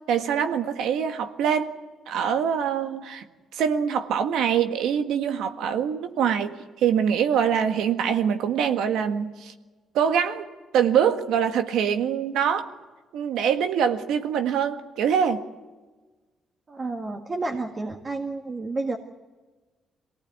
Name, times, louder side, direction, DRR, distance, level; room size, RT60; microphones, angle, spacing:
voice 1, 0.1-1.8 2.1-3.3 3.5-9.5 9.9-10.5 10.7-12.7 13.1-15.4, right 8 dB, 85° right, 7 dB, 1.6 m, -24 dB
voice 2, 16.7-19.0, right 3 dB, 35° right, 3 dB, 2.0 m, -30 dB
23.5 x 18.0 x 9.4 m, 1.3 s
cardioid pair, 90°, 0 cm